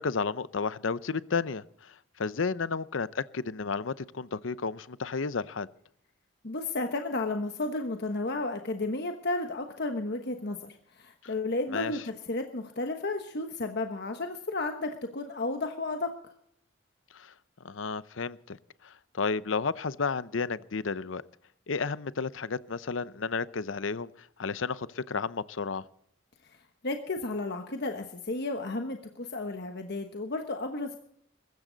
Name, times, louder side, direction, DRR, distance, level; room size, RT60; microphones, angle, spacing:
voice 1, 0.0-5.7 11.2-11.3 11.7-11.9 17.1-17.3 17.6-18.6 18.8-21.2 21.7-25.8, left 4 dB, 80° left, 16 dB, 0.7 m, -32 dB
voice 2, 6.4-16.1 26.4-26.6 26.8-31.0, left 2 dB, 60° left, 5 dB, 1.2 m, -33 dB
22.0 x 13.5 x 4.0 m, 0.71 s
head